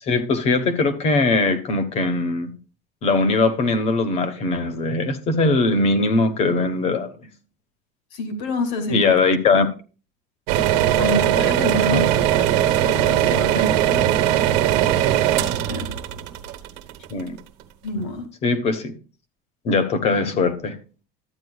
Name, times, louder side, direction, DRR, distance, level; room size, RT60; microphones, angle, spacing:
voice 1, 0.0-2.5 3.0-7.1 8.9-9.7 11.7-12.1 17.1-17.4 18.4-18.9 19.6-20.8, left 3 dB, 35° left, 1.1 m, -20 dB
voice 2, 8.1-9.1 11.0-14.9 15.7-15.9 17.8-18.3, left 2 dB, 60° left, 2.2 m, -28 dB
sound 1, 10.5-17.4, right 12 dB, 65° right, 1.1 m, -20 dB
12.5 x 8.9 x 2.3 m
cardioid pair, 175°, 19 cm